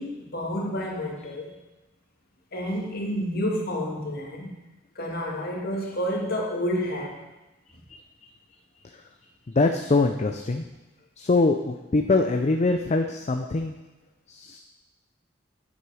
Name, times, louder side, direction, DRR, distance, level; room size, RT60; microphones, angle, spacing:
voice 1, 0.0-1.5 2.5-4.5 5.0-7.2, equal, 50° left, -1 dB, 2.0 m, -29 dB
voice 2, 9.5-10.6 11.2-13.7 14.3-14.6, left 3 dB, 35° left, 5 dB, 0.5 m, -23 dB
9.8 x 7.9 x 4.9 m, 1.0 s
head